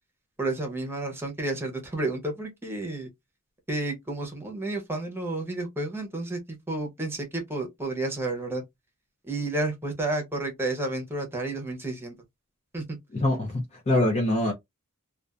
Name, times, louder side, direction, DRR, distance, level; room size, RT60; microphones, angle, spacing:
voice 1, 0.4-3.1 3.7-8.6 9.3-12.1 12.7-13.0, right 2 dB, 10° right, 0.8 m, -31 dB
voice 2, 13.1-14.5, left 1 dB, 30° left, 0.5 m, -24 dB
2.5 x 2.4 x 2.2 m
head